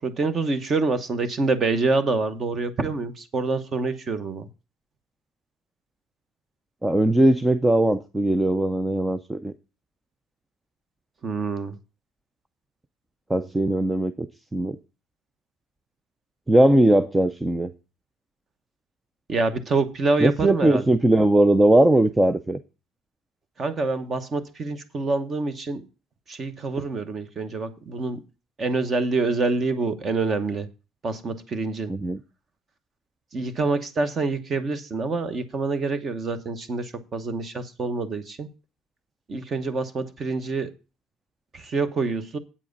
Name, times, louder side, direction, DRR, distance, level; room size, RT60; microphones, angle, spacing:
voice 1, 0.0-4.5 11.2-11.8 19.3-20.9 23.6-25.8 26.3-28.2 28.6-30.7 31.0-31.9 33.3-38.5 39.3-40.7 41.5-42.4, right 3 dB, 25° right, 1.0 m, -26 dB
voice 2, 6.8-9.5 13.3-14.3 14.5-14.8 16.5-17.7 20.2-22.6 31.9-32.2, right 1 dB, 5° right, 0.4 m, -19 dB
8.6 x 7.5 x 5.2 m
cardioid pair, 175°, 0 cm